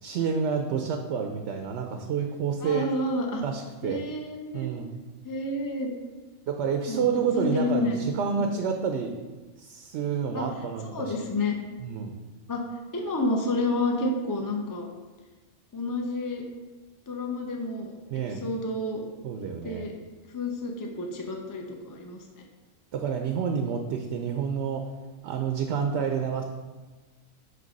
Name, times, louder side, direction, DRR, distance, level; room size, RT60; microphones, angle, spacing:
voice 1, 0.0-2.9 3.4-4.0 4.5-4.9 6.5-9.1 9.6-11.2 11.8-12.1 18.1-18.4 19.2-19.9 22.9-24.9 25.2-26.4, right 6 dB, 65° right, 4 dB, 0.8 m, -29 dB
voice 2, 2.6-3.4 3.8-4.7 5.2-5.9 6.9-7.1 7.3-8.0 8.4-8.6 10.3-10.5 10.9-11.6 12.5-12.6 12.9-14.9 15.7-16.4 17.1-17.9 18.4-19.0 19.6-19.9 20.3-22.2, left 2 dB, 25° left, 1 dB, 0.5 m, -29 dB
7.7 x 3.3 x 5.2 m, 1.3 s
omnidirectional pair, 1.4 m